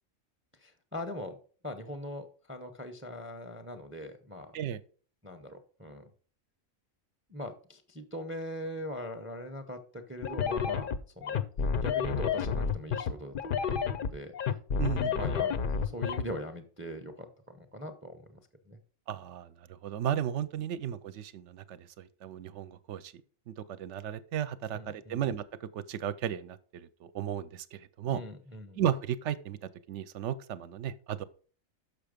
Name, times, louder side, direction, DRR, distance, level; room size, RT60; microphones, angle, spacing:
voice 1, 0.6-1.4 1.6-4.5 5.2-6.1 7.3-11.4 11.8-14.3 15.0-18.8 24.7-25.2 28.0-28.8, left 1 dB, 15° right, 8 dB, 0.5 m, -41 dB
sound 1, 10.2-16.2, left 6 dB, 55° left, 0.6 m, -30 dB
voice 2, 14.8-15.1 19.1-23.1 23.5-28.2 28.8-29.6 29.9-31.2, right 10 dB, 70° right, 15 dB, 0.8 m, -35 dB
6.7 x 5.8 x 5.1 m, 0.42 s
omnidirectional pair, 1.4 m